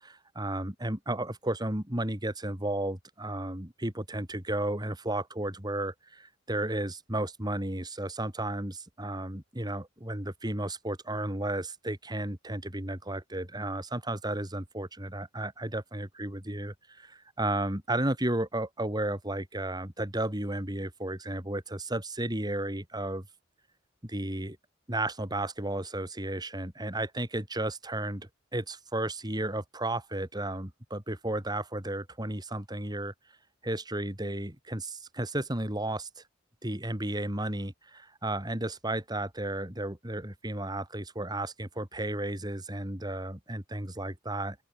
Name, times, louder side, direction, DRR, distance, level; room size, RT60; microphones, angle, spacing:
voice 1, 0.0-23.3 24.0-24.6 24.9-33.1 33.6-36.2 36.6-44.6, right 1 dB, 20° right, 3.7 m, -33 dB
open air
head